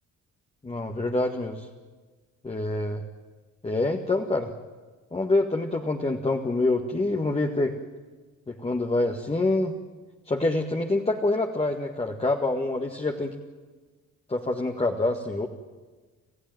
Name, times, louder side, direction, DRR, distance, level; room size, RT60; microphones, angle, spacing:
voice 1, 0.6-1.7 2.4-3.0 3.6-4.5 5.1-7.8 8.5-9.8 10.3-13.3 14.3-15.5, left 2 dB, 20° left, 2 dB, 1.9 m, -26 dB
29.0 x 14.5 x 9.3 m, 1.3 s
cardioid pair, 90°, 30 cm